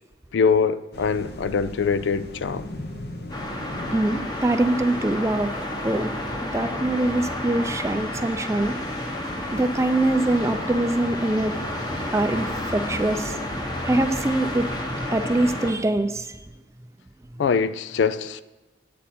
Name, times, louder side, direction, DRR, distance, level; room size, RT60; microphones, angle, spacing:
voice 1, 0.3-2.7 17.4-18.4, left 5 dB, 80° left, 0.4 m, -23 dB
sound 1, 0.9-7.8, left 1 dB, 60° left, 0.9 m, -40 dB
sound 2, 3.3-15.7, left 1 dB, 20° left, 0.9 m, -30 dB
voice 2, 3.9-5.5 5.8-6.1 6.4-8.7 9.5-11.5 12.1-13.4 13.8-14.7 15.1-16.4, right 2 dB, 15° right, 0.4 m, -23 dB
8.7 x 8.5 x 4.3 m
head